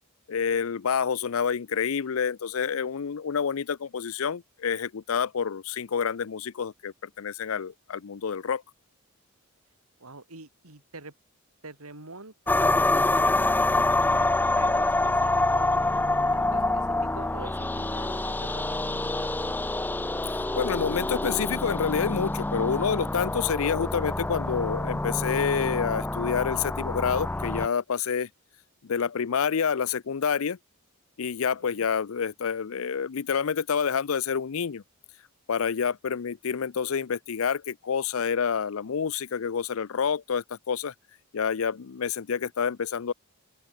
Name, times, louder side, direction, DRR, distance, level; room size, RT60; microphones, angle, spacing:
voice 1, 0.3-8.6 20.3-28.3 28.8-30.6 31.2-34.8 35.5-40.9 41.3-43.1, left 6 dB, 70° left, 0.5 m, -28 dB
voice 2, 10.0-11.1 11.6-13.5 14.1-16.8 17.1-19.4 31.6-31.9, right 3 dB, 85° right, 3.5 m, -45 dB
sound 1, 12.5-27.7, left 2 dB, 10° left, 0.4 m, -26 dB
open air
head